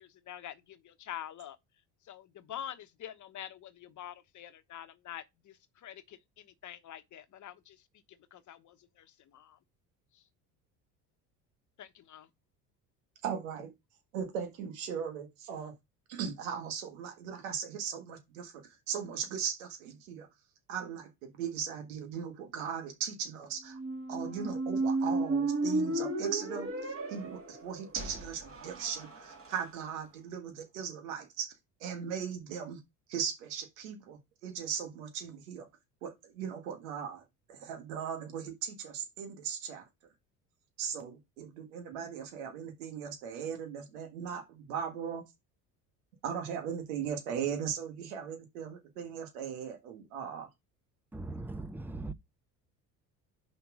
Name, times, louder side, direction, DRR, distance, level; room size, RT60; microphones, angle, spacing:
voice 1, 0.0-1.6 2.0-7.8 8.1-9.6 10.1-10.2 11.8-12.3, left 10 dB, 45° left, 1.1 m, -46 dB
voice 2, 13.2-13.7 14.1-15.7 16.1-20.3 20.7-23.8 24.1-31.5 31.8-32.8 33.1-35.7 36.0-37.2 37.5-39.9 40.8-45.2 46.2-50.5, right 7 dB, 90° right, 1.6 m, -38 dB
Squeak, 23.7-29.6, right 2 dB, 35° right, 2.3 m, -34 dB
voice 3, 51.1-52.1, right 2 dB, 5° right, 0.6 m, -39 dB
5.5 x 4.1 x 6.0 m
supercardioid pair, 80°, 40 cm